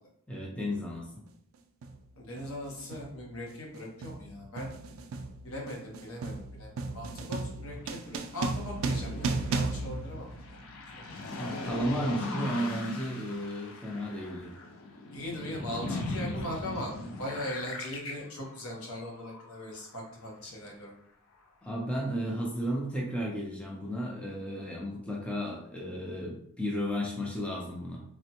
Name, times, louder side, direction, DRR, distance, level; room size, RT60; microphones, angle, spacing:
voice 1, 0.3-1.0 11.4-14.5 15.9-16.4 16.6-16.8 21.6-28.0, equal, 5° left, -2 dB, 0.4 m, -34 dB
sound 1, 0.7-0.9 1.8-2.1 2.4-10.9, right 3 dB, 65° right, 0.3 m, -35 dB
voice 2, 2.2-4.7 5.4-6.7 6.9-10.3 11.0-11.1 15.1-20.9, left 1 dB, 80° left, -1 dB, 0.8 m, -39 dB
sound 2, 7.7-19.9 20.4-20.6, left 2 dB, 65° left, 0.5 m, -40 dB
3.4 x 2.1 x 2.8 m, 0.69 s
head